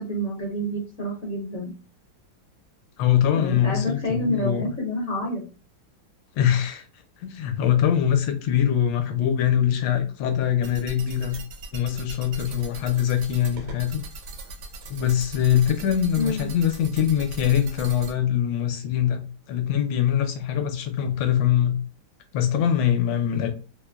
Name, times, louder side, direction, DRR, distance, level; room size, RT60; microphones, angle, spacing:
voice 1, 0.0-1.7 3.3-5.4 16.1-16.5, left 1 dB, 50° left, 0.9 m, -28 dB
voice 2, 3.0-4.7 6.4-6.8 7.2-11.4 11.7-14.0 14.9-21.8 22.3-23.5, left 9 dB, 75° left, 1.2 m, -23 dB
sound 1, 10.6-18.1, right 2 dB, 80° right, 1.3 m, -39 dB
3.2 x 2.1 x 2.2 m
omnidirectional pair, 2.2 m